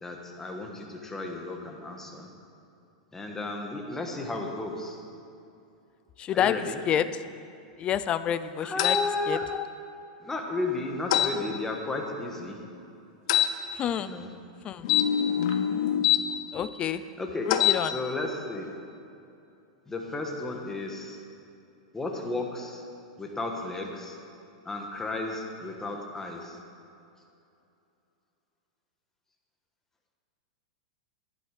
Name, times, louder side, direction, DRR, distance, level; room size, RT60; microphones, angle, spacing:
voice 1, 0.0-2.3 3.1-5.0 6.3-6.8 8.6-9.4 10.2-12.6 14.0-14.3 17.2-17.5 17.8-18.7 19.9-21.2 21.9-22.8 23.2-24.2 24.6-26.6, left 2 dB, 10° left, 1 dB, 1.4 m, -33 dB
voice 2, 6.2-7.1 7.8-9.0 9.3-9.7 13.7-14.1 14.6-14.9 16.5-17.0 17.5-18.0, left 10 dB, 25° left, 13 dB, 0.4 m, -28 dB
sound 1, 8.8-9.0 11.1-11.3 13.3-13.5 14.8-16.2 17.5-17.8, left 11 dB, 60° left, 0.8 m, -23 dB
11.5 x 10.5 x 4.9 m, 2.7 s
supercardioid pair, 140°, 4 cm